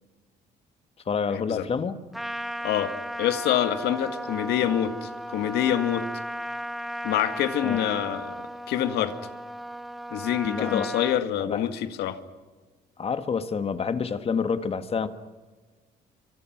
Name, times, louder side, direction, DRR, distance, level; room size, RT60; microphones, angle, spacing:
voice 1, 1.1-2.0 7.6-7.8 10.4-10.9 11.4-11.7 13.0-15.1, left 5 dB, 35° left, 9 dB, 1.7 m, -28 dB
Trumpet, 2.1-11.2, equal, ahead, 0.9 m, -35 dB
voice 2, 3.2-6.1 7.0-8.4 8.7-9.1 10.1-12.2, left 10 dB, 80° left, 9 dB, 1.9 m, -26 dB
27.0 x 25.5 x 6.0 m, 1.4 s
cardioid pair, 110°, 17 cm